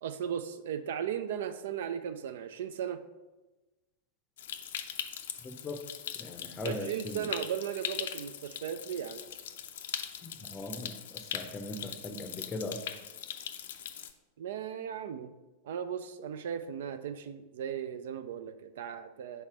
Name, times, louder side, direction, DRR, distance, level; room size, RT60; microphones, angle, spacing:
voice 1, 0.0-3.0 6.6-9.2 14.4-15.3 15.6-19.4, right 8 dB, 55° right, 11 dB, 0.3 m, -36 dB
Stream, 4.4-14.1, left 10 dB, 55° left, 0.4 m, -41 dB
voice 2, 5.4-5.8 6.2-7.3 10.2-12.8, left 2 dB, 20° left, 6 dB, 0.6 m, -40 dB
5.6 x 4.2 x 4.5 m, 1.1 s
figure-of-eight pair, 90°, 0 cm